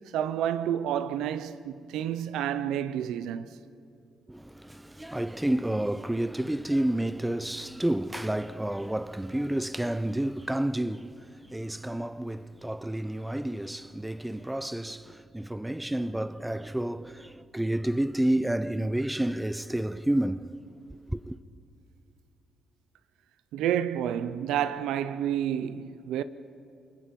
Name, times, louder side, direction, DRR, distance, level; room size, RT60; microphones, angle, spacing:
voice 1, 0.1-3.5 23.5-26.2, right 10 dB, 90° right, 0.7 m, -29 dB
voice 2, 4.3-20.6 21.1-21.4, right 1 dB, 5° right, 0.6 m, -30 dB
29.5 x 21.0 x 5.3 m
cardioid pair, 90°, 0 cm